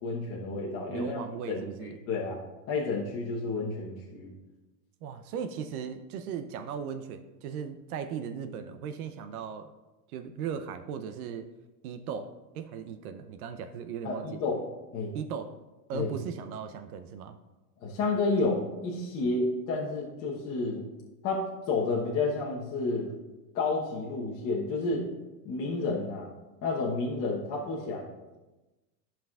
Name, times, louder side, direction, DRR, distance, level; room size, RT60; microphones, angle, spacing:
voice 1, 0.0-1.2 1.5-2.4 2.7-4.3 14.0-14.6 14.9-15.2 15.9-16.1 17.8-20.9 21.2-23.1 23.5-25.1 25.4-26.3 26.6-28.1, left 3 dB, 30° left, -4 dB, 1.0 m, -30 dB
voice 2, 0.9-2.0 5.0-9.7 10.1-11.5 11.8-14.4 15.1-15.6 15.9-17.4, right 7 dB, 60° right, 8 dB, 0.7 m, -37 dB
11.5 x 5.7 x 2.4 m, 1.1 s
supercardioid pair, 145°, 49 cm